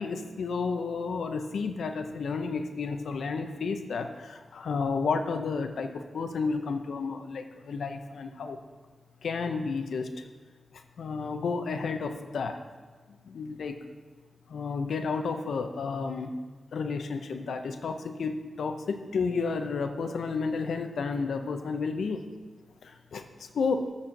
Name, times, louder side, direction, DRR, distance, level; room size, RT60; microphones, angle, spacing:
voice 1, 0.0-8.6 9.2-10.1 11.0-12.6 13.2-13.8 14.5-16.4 16.7-22.2 22.8-23.8, left 4 dB, 90° left, 7 dB, 0.7 m, -31 dB
12.5 x 4.3 x 6.5 m, 1.4 s
cardioid pair, 75°, 0 cm